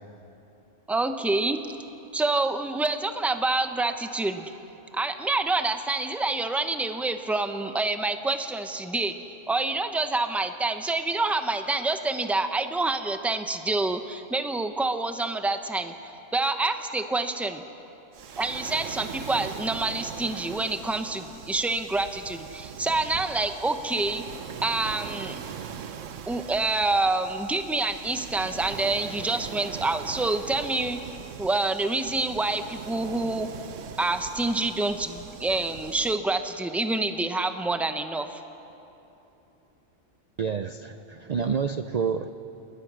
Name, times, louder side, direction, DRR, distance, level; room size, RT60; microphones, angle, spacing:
voice 1, 0.9-1.6 2.1-4.5 4.9-9.1 9.5-15.9 16.3-17.6 18.4-24.2 24.6-25.4 26.3-31.0 31.4-33.5 34.0-38.4, right 2 dB, ahead, 8 dB, 0.7 m, -27 dB
Waves surf, 18.1-36.2, right 7 dB, 85° right, 1.2 m, -41 dB
voice 2, 40.4-42.3, right 6 dB, 50° right, 9 dB, 0.5 m, -28 dB
30.0 x 19.0 x 6.3 m, 3.0 s
omnidirectional pair, 1.3 m